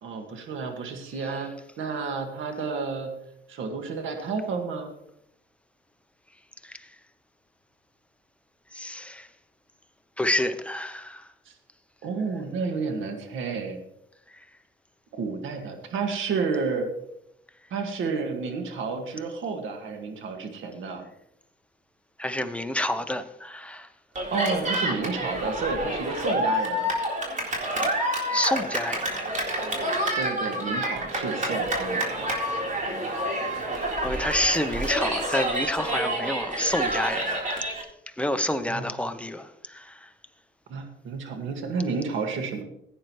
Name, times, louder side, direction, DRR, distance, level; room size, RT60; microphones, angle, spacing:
voice 1, 0.0-3.2 3.5-4.9 11.5-11.6 12.0-13.8 15.1-16.9 17.7-21.1 24.3-26.9 30.2-32.3 38.7-38.9 40.7-42.6, right 4 dB, 80° right, 1.9 m, -31 dB
voice 2, 8.7-9.3 10.2-11.3 14.3-14.4 22.2-23.9 24.7-24.8 28.3-29.3 33.5-37.6 38.2-40.1, left 1 dB, 5° left, 1.0 m, -29 dB
Cheering, 24.2-37.8, right 1 dB, 40° right, 3.9 m, -28 dB
16.0 x 9.4 x 3.1 m
cardioid pair, 90°, 20 cm